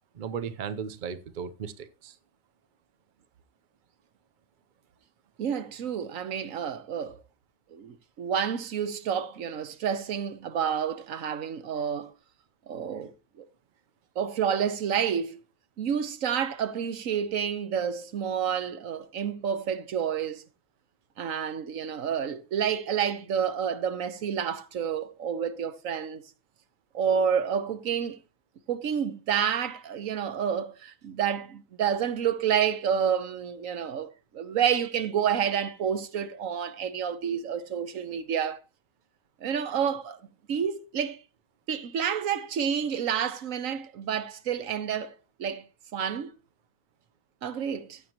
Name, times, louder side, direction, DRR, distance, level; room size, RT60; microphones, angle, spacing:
voice 1, 0.1-2.2, right 7 dB, 45° right, 0.8 m, -36 dB
voice 2, 5.4-7.2 7.7-12.1 12.7-13.1 13.4-13.5 14.2-15.4 15.8-20.4 21.2-26.2 26.9-28.2 28.7-38.6 39.4-40.2 40.5-41.2 41.7-45.6 45.9-46.3 47.4-48.0, right 8 dB, 85° right, 1.3 m, -29 dB
14.5 x 8.8 x 3.0 m
omnidirectional pair, 1.4 m